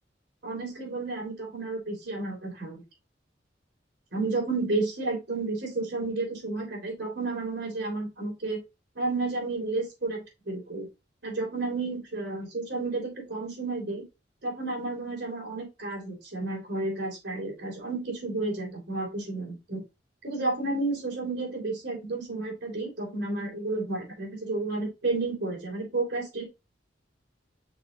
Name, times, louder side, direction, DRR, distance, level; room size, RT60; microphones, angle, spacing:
voice 1, 0.4-2.8 4.1-8.6 9.0-10.9 11.2-14.0 14.4-19.8 20.2-26.4, right 3 dB, 70° right, 0 dB, 3.6 m, -31 dB
6.1 x 4.8 x 3.8 m, 0.25 s
head